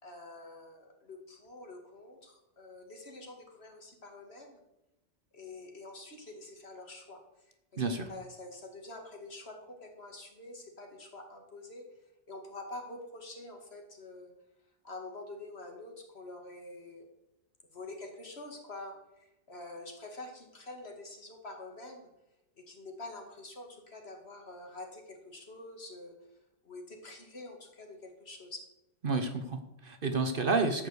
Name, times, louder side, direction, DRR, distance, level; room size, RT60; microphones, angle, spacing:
voice 1, 0.0-4.6 5.3-7.2 7.7-7.8 8.1-11.8 12.3-14.3 14.8-17.1 17.7-22.1 22.7-26.1 26.6-28.7, left 2 dB, 55° left, 2 dB, 2.3 m, -46 dB
voice 2, 7.8-8.1 29.0-30.9, right 3 dB, 50° right, 7 dB, 1.1 m, -30 dB
13.0 x 5.2 x 8.0 m, 0.90 s
omnidirectional pair, 1.3 m